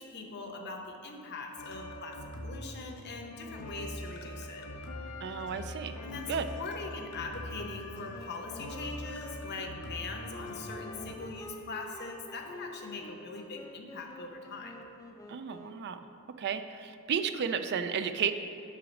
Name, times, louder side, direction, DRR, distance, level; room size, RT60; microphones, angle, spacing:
voice 1, 0.0-4.7 6.0-14.8, left 3 dB, 50° left, 3 dB, 0.8 m, -42 dB
sound 1, 1.6-11.2, left 1 dB, 90° left, 0.8 m, -43 dB
voice 2, 5.2-6.0 6.3-6.5 15.3-16.1 16.4-18.3, right 7 dB, 50° right, 9 dB, 0.4 m, -33 dB
Wind instrument woodwind instrument, 7.5-16.0, left 1 dB, 15° left, 0.5 m, -48 dB
7.6 x 5.9 x 5.2 m, 2.8 s
head